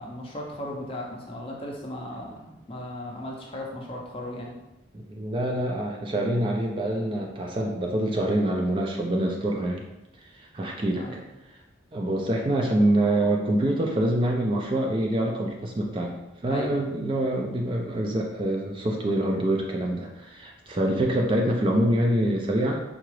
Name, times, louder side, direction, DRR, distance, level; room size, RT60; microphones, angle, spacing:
voice 1, 0.0-4.6 11.0-11.2 16.4-16.7, left 1 dB, 30° left, -1 dB, 0.5 m, -36 dB
voice 2, 4.9-9.8 10.4-11.0 11.9-22.8, right 1 dB, 25° right, 1 dB, 0.3 m, -25 dB
3.8 x 2.3 x 3.1 m, 0.95 s
head